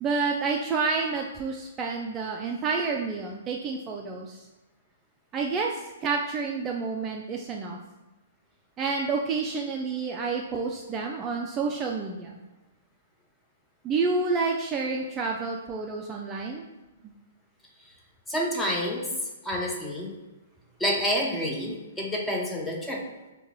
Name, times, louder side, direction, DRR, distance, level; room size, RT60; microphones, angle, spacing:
voice 1, 0.0-4.5 5.3-7.8 8.8-12.4 13.8-16.7, right 4 dB, 25° right, 0 dB, 0.3 m, -29 dB
voice 2, 18.3-19.1 19.4-20.1 20.8-23.0, equal, 10° left, -2 dB, 0.7 m, -28 dB
4.5 x 2.2 x 2.9 m, 1.1 s
figure-of-eight pair, 115°, 0 cm